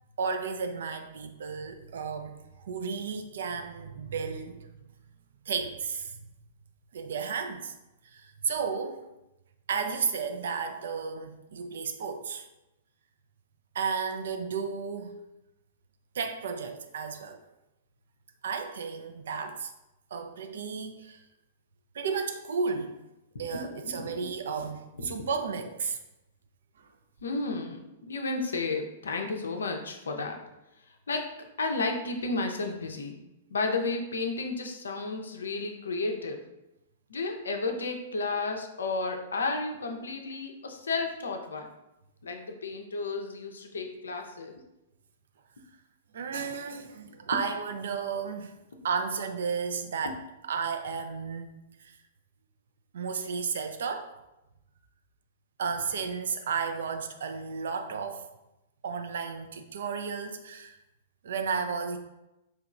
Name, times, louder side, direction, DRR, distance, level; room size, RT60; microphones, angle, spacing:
voice 1, 0.2-2.4 2.6-4.7 5.5-6.2 6.9-7.7 8.1-9.0 9.7-12.4 13.7-15.2 16.1-17.4 18.4-19.7 20.1-21.2 21.9-23.0 23.4-26.0 46.1-48.6 48.8-51.5 52.9-54.1 55.6-58.3 58.8-60.8 61.2-62.0, right 5 dB, 60° right, 0.4 m, -33 dB
voice 2, 23.5-24.1 25.0-25.1 27.2-30.4 31.1-31.3 31.6-33.2 33.5-36.4 37.1-41.7 42.2-44.6 50.0-50.1, left 3 dB, 70° left, 0.5 m, -32 dB
4.4 x 2.8 x 2.5 m
figure-of-eight pair, 105°, 0 cm